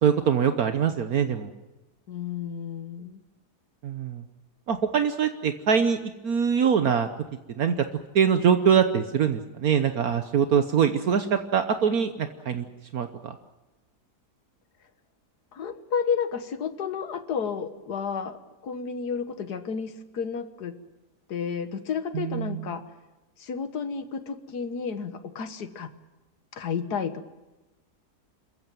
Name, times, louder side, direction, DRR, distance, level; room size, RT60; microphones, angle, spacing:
voice 1, 0.0-1.5 3.8-4.2 4.7-7.1 7.6-7.7 8.1-12.6 12.9-13.3 22.1-22.7, right 7 dB, 65° right, 8 dB, 1.4 m, -23 dB
voice 2, 2.1-3.2 15.5-18.4 18.6-20.8 21.3-22.8 23.4-25.9 26.5-27.3, left 6 dB, 75° left, 10 dB, 1.9 m, -31 dB
27.5 x 15.0 x 9.2 m, 1.1 s
omnidirectional pair, 1.7 m